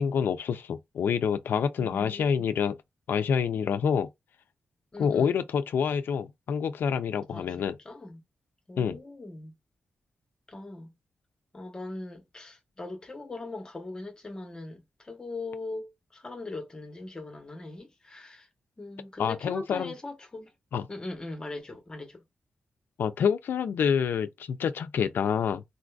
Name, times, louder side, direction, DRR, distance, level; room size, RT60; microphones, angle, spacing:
voice 1, 0.0-2.8 3.1-4.1 5.0-7.8 8.8-9.0 19.2-19.9 20.7-20.8 23.0-25.6, left 7 dB, 80° left, 0.3 m, -27 dB
voice 2, 1.8-2.5 4.9-5.4 7.3-8.2 8.7-9.6 10.5-10.9 11.5-18.5 18.8-20.5 20.9-22.2, left 2 dB, 20° left, 0.9 m, -40 dB
3.9 x 2.5 x 2.3 m
wide cardioid pair, 160°, 3 cm